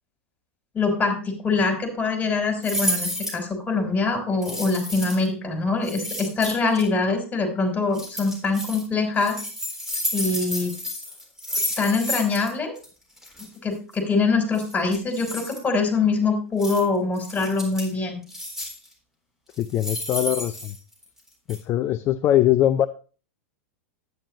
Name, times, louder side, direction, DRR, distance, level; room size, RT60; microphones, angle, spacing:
voice 1, 0.7-9.4 10.1-10.7 11.8-12.7 13.6-18.2, left 3 dB, 20° left, 4 dB, 3.8 m, -24 dB
sound 1, 2.6-3.4 4.4-5.3 5.8-6.8 7.9-8.8 9.2-12.5 12.8-12.9 13.2-13.5 14.5-15.6 16.6-16.8 17.2-17.9 18.3-18.9 19.5-21.2 21.5-21.6, equal, 5° right, 3.8 m, -31 dB
voice 2, 19.6-20.7 21.5-22.9, left 12 dB, 35° left, 11 dB, 0.5 m, -21 dB
10.5 x 9.3 x 2.9 m, 0.37 s
hypercardioid pair, 95°, 7 cm